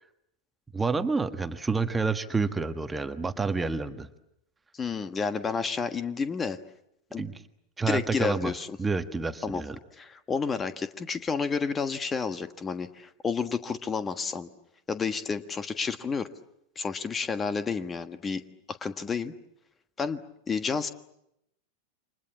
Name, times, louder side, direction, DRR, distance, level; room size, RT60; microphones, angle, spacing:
voice 1, 0.7-4.1 7.2-7.4 7.8-8.5 8.8-9.8, right 4 dB, 10° right, 9 dB, 1.4 m, -29 dB
voice 2, 4.7-6.6 7.1-7.2 7.9-8.8 9.4-9.6 10.0-14.5 14.9-16.3 16.7-18.4 18.7-19.3 20.0-20.9, left 5 dB, 20° left, 11 dB, 1.4 m, -30 dB
29.5 x 26.0 x 7.4 m, 0.80 s
figure-of-eight pair, 90°, 0 cm